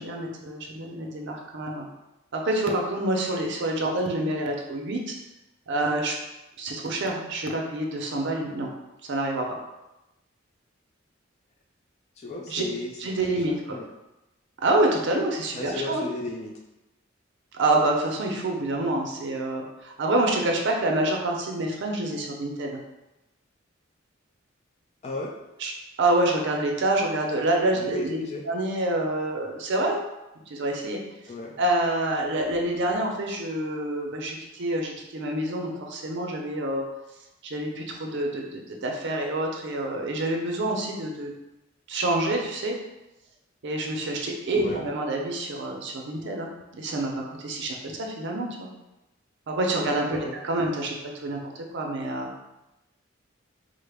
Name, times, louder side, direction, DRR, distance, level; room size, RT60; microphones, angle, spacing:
voice 1, 0.0-1.9 2.3-5.1 5.7-6.1 6.6-8.7 9.1-9.5 12.5-12.6 13.0-13.8 14.6-16.0 17.5-22.8 25.6-25.7 26.0-28.2 28.5-30.0 30.5-31.0 31.6-36.8 37.4-41.3 41.9-42.8 43.6-46.5 46.7-48.7 49.5-50.2 50.4-51.4 51.7-52.3, right 1 dB, 60° right, 1 dB, 0.5 m, -27 dB
voice 2, 12.2-12.9 13.3-13.4 13.7-13.9 15.6-16.5 25.0-25.3 27.8-28.4 31.3-31.5 44.5-44.8 50.1-50.4, left 2 dB, 35° left, 0 dB, 0.3 m, -33 dB
3.9 x 2.1 x 3.3 m, 0.97 s
head